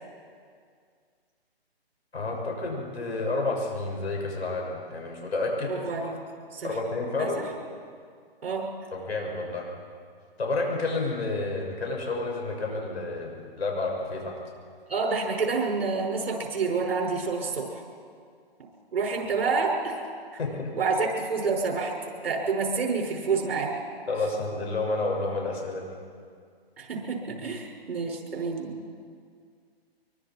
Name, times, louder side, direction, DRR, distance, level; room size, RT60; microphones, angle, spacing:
voice 1, 2.1-5.7 6.6-7.4 8.9-9.6 10.4-14.4 20.4-20.7 24.1-26.0, left 3 dB, 85° left, 0 dB, 6.4 m, -30 dB
voice 2, 5.7-6.2 6.5-6.8 7.2-7.3 8.4-8.7 14.9-17.8 18.9-20.0 20.8-21.9 22.2-23.7 26.8-28.7, right 4 dB, 70° right, 0 dB, 6.1 m, -28 dB
24.5 x 23.5 x 4.7 m, 2.1 s
hypercardioid pair, 155°, 31 cm